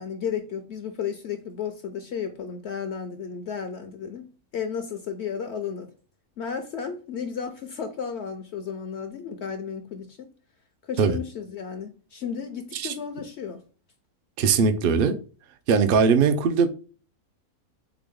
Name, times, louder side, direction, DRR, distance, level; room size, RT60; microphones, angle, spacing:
voice 1, 0.0-5.9 6.4-10.3 10.8-13.6, left 7 dB, 60° left, 0.7 m, -33 dB
voice 2, 14.4-15.2 15.7-16.7, right 5 dB, 60° right, 0.5 m, -20 dB
3.8 x 3.7 x 3.4 m
omnidirectional pair, 1.5 m